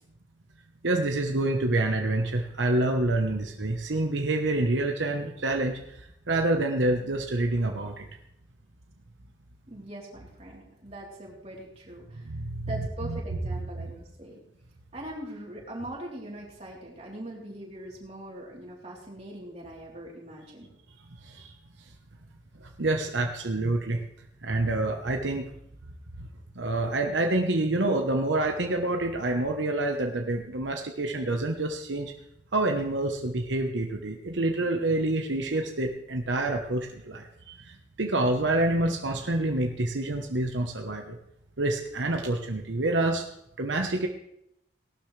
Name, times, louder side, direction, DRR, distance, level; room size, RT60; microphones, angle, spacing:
voice 1, 0.8-5.8 6.3-8.1 12.2-12.4 13.1-13.2 21.3-21.5 22.8-24.0 24.4-25.5 26.6-32.1 32.5-41.2 41.6-43.2 43.6-44.1, right 2 dB, 80° right, 3 dB, 1.1 m, -27 dB
voice 2, 9.7-12.3 12.7-14.4 14.9-20.7, right 1 dB, 35° right, -4 dB, 3.7 m, -41 dB
18.0 x 12.0 x 3.3 m, 0.78 s
head